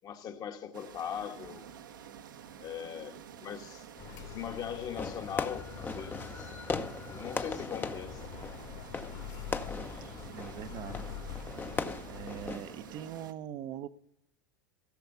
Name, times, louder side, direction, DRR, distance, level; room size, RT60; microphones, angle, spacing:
voice 1, 0.0-1.7 2.6-3.9 4.2-6.5 7.1-8.3, left 8 dB, 35° left, 1.4 m, -40 dB
sound 1, 0.7-13.3, right 8 dB, 75° right, 1.2 m, -50 dB
sound 2, 4.0-12.6, left 8 dB, 55° left, 2.3 m, -45 dB
Fireworks, 5.0-13.0, left 4 dB, 20° left, 0.9 m, -39 dB
voice 2, 10.2-11.0 12.1-13.9, right 10 dB, 45° right, 0.8 m, -42 dB
15.0 x 6.9 x 6.8 m
hypercardioid pair, 85°, 11 cm